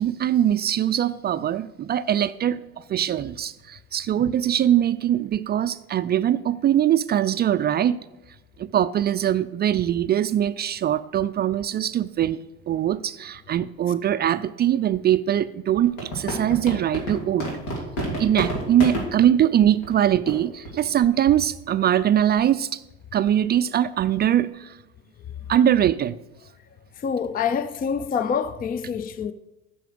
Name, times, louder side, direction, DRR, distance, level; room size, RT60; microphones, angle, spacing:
voice 1, 0.0-8.0 8.6-12.4 12.7-17.5 18.2-22.8 23.1-24.8 25.5-26.2, right 10 dB, 30° right, 0.4 m, -22 dB
sound 1, 16.0-19.1 19.8-19.9 20.3-20.4 20.6-20.9 21.3-21.5, equal, 80° left, 3.0 m, -29 dB
voice 2, 27.0-29.3, left 6 dB, 30° left, 0.5 m, -26 dB
8.9 x 5.7 x 7.7 m
hypercardioid pair, 80°, 32 cm